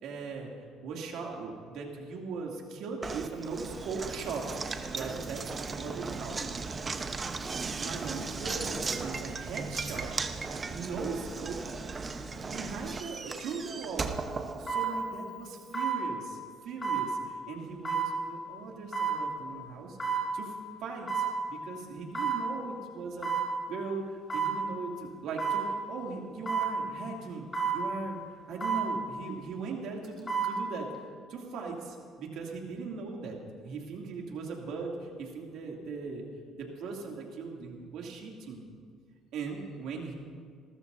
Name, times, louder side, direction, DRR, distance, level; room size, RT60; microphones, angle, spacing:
voice 1, 0.0-0.5 0.8-4.5 4.9-6.4 7.8-10.1 10.7-11.7 12.4-14.1 14.6-20.0 20.3-20.5 20.8-23.3 23.7-27.5 27.7-28.2 28.5-30.9 31.3-33.4 33.6-36.3 36.6-38.6 39.3-40.1, right 4 dB, 70° right, -1 dB, 2.6 m, -39 dB
Knock, 3.0-15.2, right 4 dB, 30° right, 0.9 m, -37 dB
sound 1, 13.5-13.7 14.7-14.9 15.7-16.0 16.8-17.1 17.8-18.1 18.9-19.2 20.0-20.2 21.1-21.3 22.1-22.4 23.2-23.5 24.3-24.6 25.4-25.6 26.5-26.7 27.5-27.8 28.6-28.9 30.0-30.5 30.9-31.0, right 6 dB, 25° left, 4.7 m, -30 dB
27.0 x 13.5 x 2.7 m, 2.1 s
supercardioid pair, 85°, 0 cm